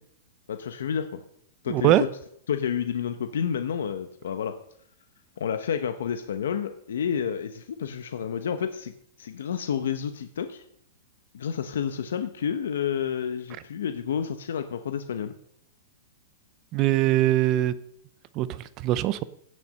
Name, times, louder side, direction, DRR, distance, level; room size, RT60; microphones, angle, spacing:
voice 1, 0.5-1.2 1.6-2.1 2.5-4.5 5.4-8.9 9.2-10.6 11.3-15.3, left 8 dB, 75° left, 1.0 m, -30 dB
voice 2, 1.7-2.0 16.7-17.7 18.4-18.6 18.8-19.2, right 14 dB, 20° right, 0.5 m, -21 dB
16.0 x 6.8 x 6.5 m
supercardioid pair, 180°, 0 cm